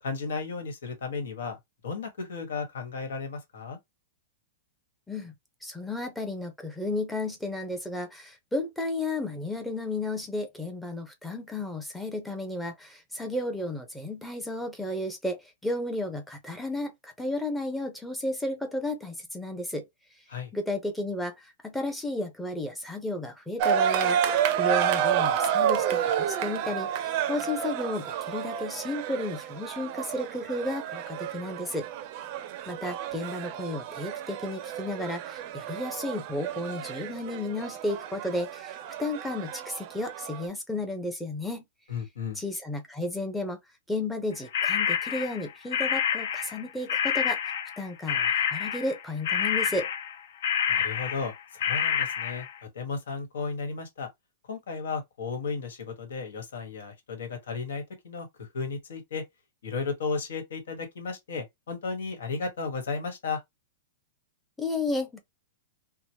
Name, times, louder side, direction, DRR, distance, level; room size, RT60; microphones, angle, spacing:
voice 1, 0.0-1.6 1.8-3.8 20.3-20.5 41.9-42.4 50.7-52.5 52.7-54.1 54.5-59.2 59.6-63.4, left 4 dB, 85° left, 1.3 m, -34 dB
voice 2, 5.6-19.8 20.5-31.9 32.7-41.6 42.4-43.6 43.9-47.5 47.8-49.9 64.6-65.2, left 2 dB, 5° left, 0.6 m, -33 dB
sound 1, 23.6-40.5, right 9 dB, 40° right, 0.4 m, -30 dB
sound 2, 44.5-46.6 46.9-52.5, left 8 dB, 65° left, 0.5 m, -28 dB
2.9 x 2.1 x 2.8 m
supercardioid pair, 155°, 0 cm